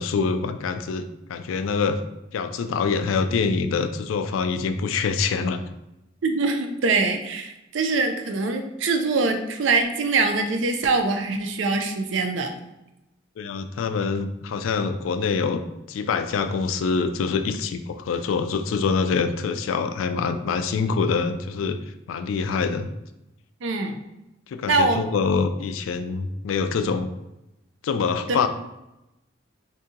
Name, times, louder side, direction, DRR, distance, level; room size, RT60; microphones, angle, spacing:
voice 1, 0.0-2.0 2.3-5.6 13.4-15.6 15.9-21.8 22.1-22.9 24.5-27.1 27.8-28.5, left 5 dB, 85° left, 10 dB, 0.3 m, -25 dB
voice 2, 6.2-12.5 23.6-23.9 24.7-25.0 28.3-28.4, right 3 dB, 75° right, 5 dB, 0.5 m, -23 dB
2.8 x 2.7 x 3.6 m, 0.92 s
head